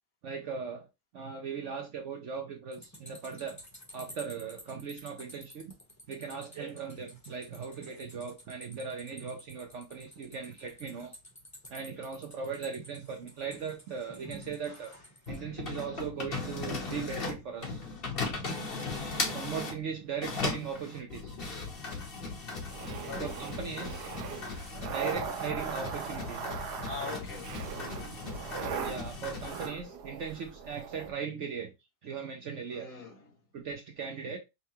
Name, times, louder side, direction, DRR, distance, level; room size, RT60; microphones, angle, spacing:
voice 1, 0.2-0.9 1.1-3.6 3.9-5.7 6.1-11.1 11.7-14.9 15.3-17.8 19.3-21.4 23.2-24.1 24.9-26.6 28.8-31.7 32.0-32.9 33.5-34.4, right 6 dB, 60° right, 0.8 m, -38 dB
sound 1, 2.7-15.4, equal, 15° left, 0.8 m, -51 dB
sound 2, 15.3-19.8 20.2-29.7, left 3 dB, 40° left, 1.0 m, -37 dB
sound 3, 22.6-31.1, right 6 dB, 80° right, 1.2 m, -39 dB
voice 2, 23.1-23.4 26.8-27.9 32.7-33.4, left 5 dB, 75° left, 2.2 m, -42 dB
5.5 x 2.2 x 2.8 m
omnidirectional pair, 1.8 m